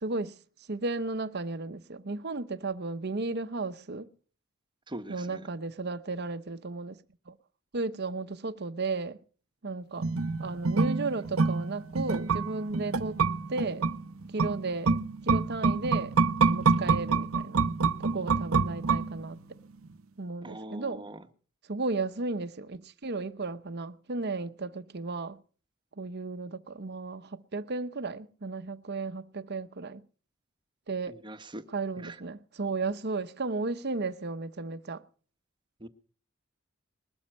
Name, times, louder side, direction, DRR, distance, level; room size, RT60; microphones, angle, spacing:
voice 1, 0.0-0.4 0.7-4.1 5.1-7.0 7.3-7.4 7.7-9.2 9.6-10.1 10.4-13.2 13.5-13.9 14.3-15.0 15.2-17.6 18.0-19.4 20.2-21.0 21.7-25.4 26.0-30.0 30.9-31.2 31.7-35.0, right 3 dB, 50° right, 0.9 m, -34 dB
voice 2, 4.9-5.4 20.4-21.3 31.1-31.6 32.0-32.2 35.8-35.9, right 1 dB, 20° right, 1.2 m, -42 dB
sound 1, 10.0-19.5 19.8-19.9, right 4 dB, 85° right, 0.9 m, -27 dB
21.0 x 13.0 x 4.4 m
head